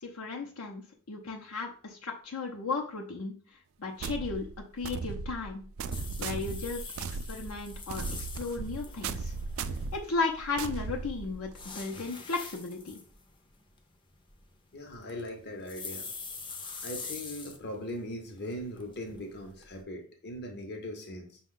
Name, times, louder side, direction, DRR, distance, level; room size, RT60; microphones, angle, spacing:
voice 1, 0.0-3.3 3.8-4.5 4.7-5.6 6.2-6.8 7.3-8.0 8.4-9.3 9.9-13.0, left 4 dB, 80° left, 0 dB, 0.7 m, -35 dB
sound 1, 4.0-11.7, right 4 dB, 70° right, 0.3 m, -37 dB
sound 2, 5.9-10.3 10.8-18.0 18.3-19.8, left 4 dB, 25° left, 0.5 m, -44 dB
voice 2, 14.7-16.1 16.8-21.4, left 1 dB, 50° left, 3 dB, 0.8 m, -40 dB
5.2 x 2.3 x 3.7 m, 0.43 s
head